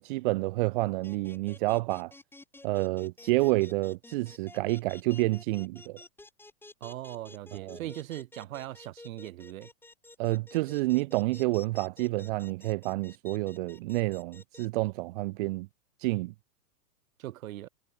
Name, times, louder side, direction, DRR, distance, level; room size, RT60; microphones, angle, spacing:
voice 1, 0.0-2.1 2.6-6.0 7.5-7.8 10.2-15.7 16.0-16.3, right 21 dB, 35° right, 0.5 m, -29 dB
sound 1, 1.0-14.7, left 2 dB, 5° left, 4.3 m, -50 dB
voice 2, 6.8-9.7 17.2-17.7, right 14 dB, 65° right, 1.0 m, -40 dB
hypercardioid pair, 130°, 44 cm